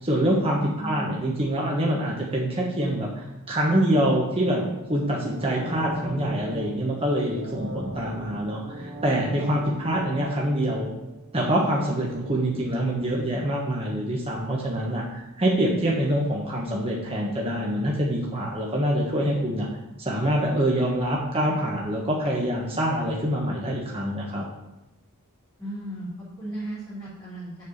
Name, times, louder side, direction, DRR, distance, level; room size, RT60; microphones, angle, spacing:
voice 1, 0.0-10.9 11.3-19.7 20.0-24.4, right 1 dB, 25° right, -3 dB, 1.4 m, -25 dB
voice 2, 0.8-1.2 25.6-27.6, right 1 dB, 20° left, -14 dB, 3.6 m, -35 dB
sound 1, 5.1-11.9 12.2-12.3, right 1 dB, 65° right, 3.0 m, -37 dB
6.9 x 5.9 x 7.3 m, 0.94 s
head